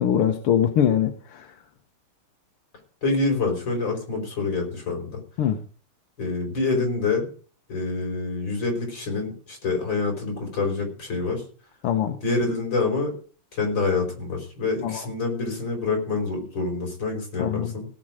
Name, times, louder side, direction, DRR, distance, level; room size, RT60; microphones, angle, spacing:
voice 1, 0.0-1.6 5.4-5.6 11.8-12.2 14.8-15.1 17.4-17.7, left 9 dB, 85° left, 5 dB, 2.0 m, -23 dB
voice 2, 3.0-5.2 6.2-7.3 7.7-11.4 12.2-13.2 13.5-17.9, left 3 dB, 55° left, 3 dB, 5.4 m, -26 dB
17.0 x 7.7 x 4.9 m, 0.40 s
omnidirectional pair, 2.4 m